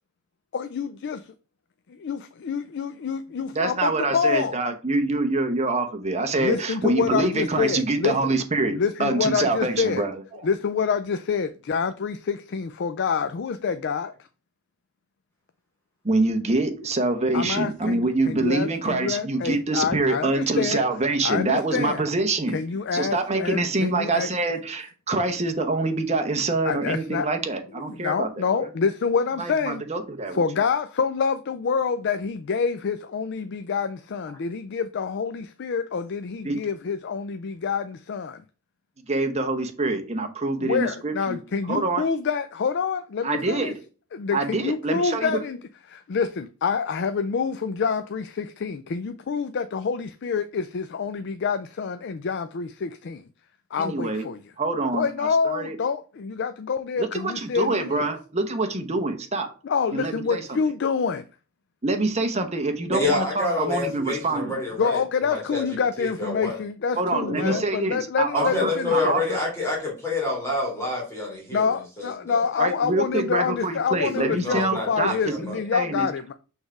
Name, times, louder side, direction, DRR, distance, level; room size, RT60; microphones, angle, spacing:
voice 1, 0.5-1.2 1.9-4.6 6.4-8.2 8.7-10.0 10.4-14.1 17.3-20.8 21.2-22.0 22.5-24.3 26.6-27.3 27.9-29.8 30.3-38.4 40.6-43.7 44.1-45.6 45.9-53.2 53.7-54.4 54.9-58.1 59.6-61.2 64.8-69.2 71.5-76.3, left 5 dB, 55° left, 0.4 m, -27 dB
voice 2, 3.5-10.2 16.0-22.6 22.9-28.7 29.4-30.4 36.4-36.6 39.1-41.4 41.7-42.0 43.2-43.8 44.3-45.4 53.8-54.3 54.6-55.8 57.0-59.5 59.9-60.6 61.8-64.6 67.0-69.4 72.6-75.3 75.7-76.1, right 2 dB, 30° right, 0.9 m, -25 dB
voice 3, 62.9-65.6 66.0-66.6 67.3-67.6 68.3-71.6 72.0-72.4 74.2-75.6, left 2 dB, 10° left, 2.2 m, -28 dB
6.3 x 3.4 x 4.7 m
head